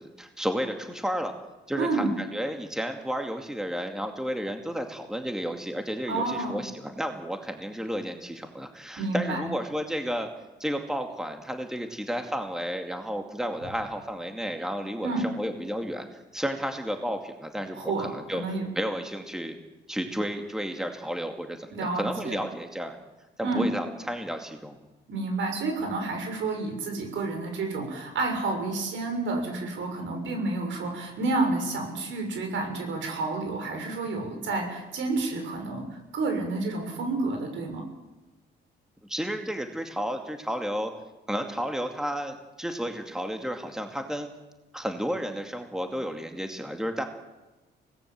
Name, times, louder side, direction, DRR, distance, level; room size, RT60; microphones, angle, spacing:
voice 1, 0.0-1.3 1.7-10.3 10.6-16.0 16.3-18.4 18.8-19.6 19.9-23.0 23.4-24.8 39.1-40.9 41.3-44.3 44.7-47.0, equal, 5° right, 5 dB, 2.2 m, -32 dB
voice 2, 1.8-2.1 6.1-6.6 9.0-9.5 15.0-15.2 17.7-18.6 21.7-22.4 23.4-23.7 25.1-35.9 36.1-37.8, right 3 dB, 70° right, 4 dB, 6.6 m, -30 dB
25.0 x 18.5 x 7.6 m, 1.1 s
cardioid pair, 90°, 20 cm